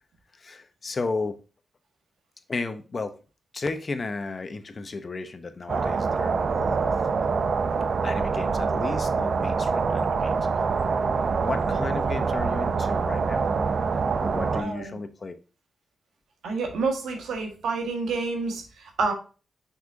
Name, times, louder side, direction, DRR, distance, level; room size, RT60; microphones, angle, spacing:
voice 1, 0.3-1.4 2.5-3.2 3.5-6.9 7.7-7.8 8.0-10.7 11.4-13.5 14.2-15.3, left 3 dB, 45° left, 9 dB, 1.0 m, -34 dB
sound 1, 5.7-14.6, right 5 dB, 65° right, 0.7 m, -25 dB
voice 2, 14.6-14.9 16.4-19.1, right 4 dB, 90° right, 4 dB, 1.7 m, -28 dB
6.1 x 5.8 x 2.8 m, 0.35 s
cardioid pair, 55°, 0 cm